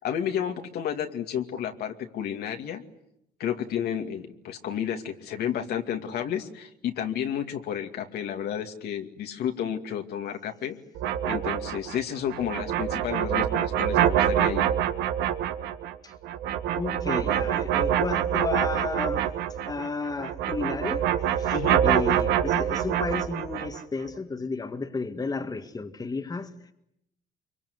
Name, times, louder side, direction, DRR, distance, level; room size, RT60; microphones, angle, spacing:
voice 1, 0.0-2.8 3.4-10.8 11.2-14.6 21.5-21.8, left 9 dB, 70° left, 2.4 m, -31 dB
sound 1, 11.0-19.9 20.2-23.8, right 10 dB, 85° right, 1.6 m, -26 dB
voice 2, 16.8-19.2 19.7-26.7, left 4 dB, 20° left, 1.9 m, -33 dB
25.0 x 24.0 x 9.7 m
cardioid pair, 110°, 17 cm